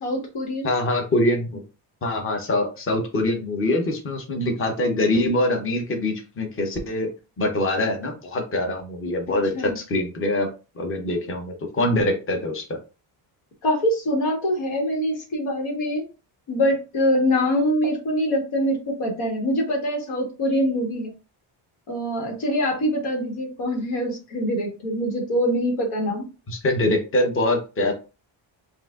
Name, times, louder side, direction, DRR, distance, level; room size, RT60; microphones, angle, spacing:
voice 1, 0.0-0.7 9.5-9.7 13.6-16.0 16.5-21.1 21.9-26.3, equal, 80° left, 0 dB, 1.6 m, -24 dB
voice 2, 0.6-1.6 2.0-7.1 7.4-10.5 10.8-12.7 26.5-27.9, left 1 dB, 25° left, 3 dB, 0.9 m, -24 dB
5.6 x 2.6 x 2.5 m, 0.31 s
cardioid pair, 125°, 48 cm